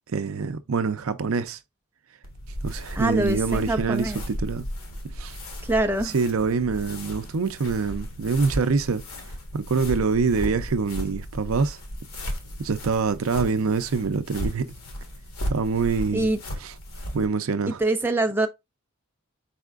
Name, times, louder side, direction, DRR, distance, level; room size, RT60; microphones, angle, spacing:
voice 1, 0.1-1.6 2.6-4.6 5.2-5.4 6.1-9.0 9.5-11.8 12.6-14.7 15.5-16.3 16.6-16.7 17.1-17.8, right 5 dB, 75° right, 0.5 m, -25 dB
sound 1, 2.2-17.3, equal, 85° left, 1.4 m, -35 dB
voice 2, 3.0-4.2 5.6-6.1 16.1-16.4 17.8-18.5, right 2 dB, 10° right, 0.5 m, -24 dB
4.6 x 4.2 x 2.4 m
head